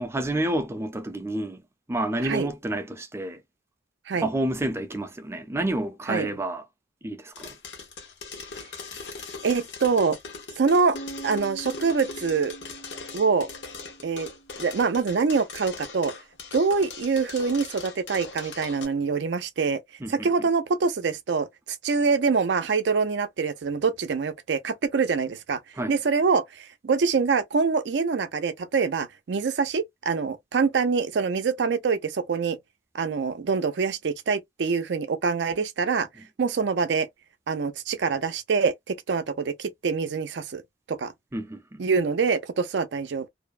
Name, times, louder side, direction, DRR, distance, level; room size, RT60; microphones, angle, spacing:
voice 1, 0.0-1.6 1.9-3.4 4.2-6.6 7.0-7.3 20.0-20.3 25.8-26.0 41.3-41.9, right 1 dB, 15° right, 0.5 m, -29 dB
sound 1, 7.3-18.8, left 4 dB, 85° left, 1.0 m, -40 dB
voice 2, 9.4-10.2 10.6-11.0 11.2-12.6 13.1-13.5 14.0-14.3 14.6-16.1 16.5-19.8 20.1-21.5 21.8-25.6 25.9-32.6 32.9-36.1 36.4-37.1 37.5-40.6 40.9-41.1 41.8-43.3, right 5 dB, 70° right, 0.5 m, -25 dB
sound 2, 10.9-14.8, right 3 dB, 35° left, 0.6 m, -43 dB
2.6 x 2.1 x 2.4 m
head